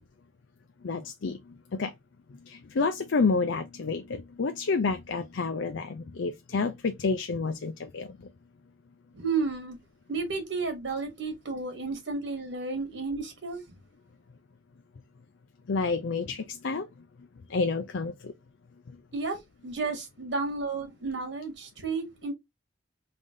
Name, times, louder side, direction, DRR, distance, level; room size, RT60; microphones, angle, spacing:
voice 1, 0.8-1.9 2.5-8.3 15.7-16.9 17.5-18.3 18.9-19.0, left 4 dB, 70° left, 0.5 m, -29 dB
voice 2, 9.1-9.8 10.1-13.6 19.1-19.4 19.6-22.3, right 4 dB, 65° right, 2.0 m, -32 dB
3.8 x 3.5 x 3.8 m
head